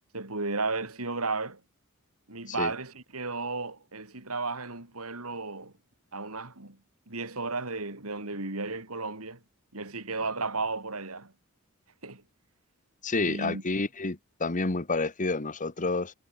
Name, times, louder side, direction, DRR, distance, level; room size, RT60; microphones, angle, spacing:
voice 1, 0.1-1.6 2.3-5.7 6.1-6.8 7.1-9.4 9.7-11.3 12.0-12.2 13.2-13.6, right 3 dB, 75° right, 4.1 m, -34 dB
voice 2, 13.0-16.1, left 3 dB, 35° left, 1.3 m, -29 dB
head